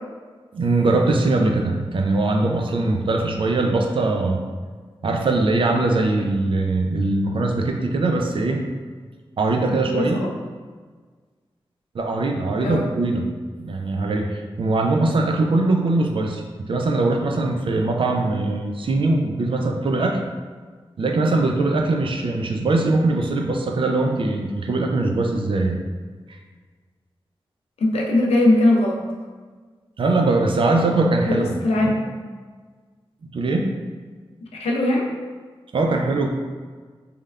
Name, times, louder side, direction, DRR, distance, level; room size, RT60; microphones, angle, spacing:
voice 1, 0.5-4.4 5.0-8.6 9.4-10.2 11.9-13.2 13.6-20.2 21.0-25.8 26.3-26.4 30.0-31.4 31.8-31.9 33.3-33.7 35.7-36.3, right 2 dB, 55° right, 2 dB, 0.3 m, -21 dB
voice 2, 9.7-10.3 12.6-12.9 27.8-29.0 31.2-32.0 34.6-35.1, left 1 dB, 85° left, -1 dB, 0.4 m, -20 dB
3.2 x 2.1 x 2.3 m, 1.5 s
cardioid pair, 40°, 10 cm